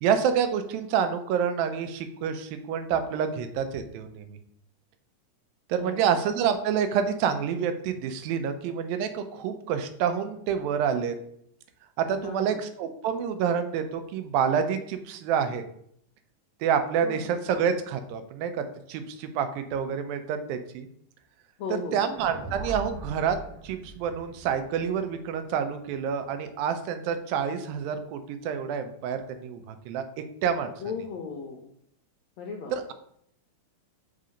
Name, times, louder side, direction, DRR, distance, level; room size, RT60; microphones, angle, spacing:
voice 1, 0.0-4.4 5.7-11.2 12.0-15.6 16.6-20.9 21.7-23.4 23.6-30.0 30.4-30.7 32.7-32.9, right 7 dB, 85° right, 8 dB, 2.4 m, -28 dB
voice 2, 12.2-12.6 17.0-17.3 21.6-22.0 30.8-31.7 32.4-32.7, left 5 dB, 80° left, 1 dB, 1.6 m, -36 dB
sound 1, 22.2-26.4, right 2 dB, 65° right, 1.1 m, -41 dB
5.5 x 3.8 x 4.9 m, 0.68 s
omnidirectional pair, 4.0 m